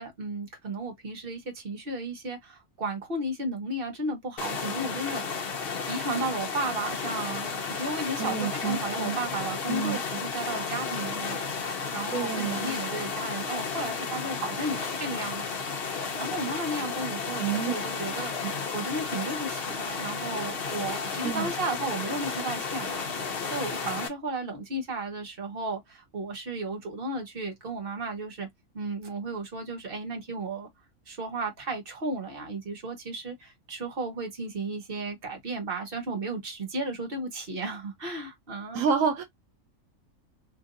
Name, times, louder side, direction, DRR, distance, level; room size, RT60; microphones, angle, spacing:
voice 1, 0.0-5.4 5.9-11.6 11.9-15.7 16.2-28.5 28.7-30.7 31.1-38.8, right 2 dB, 45° right, 1.4 m, -34 dB
sound 1, 4.4-24.1, left 5 dB, 50° left, 1.0 m, -33 dB
voice 2, 8.2-9.2 9.7-10.0 12.1-12.8 17.4-17.7 18.3-18.5 21.2-21.5 38.7-39.2, right 7 dB, 85° right, 1.2 m, -29 dB
3.0 x 2.7 x 3.7 m
omnidirectional pair, 1.4 m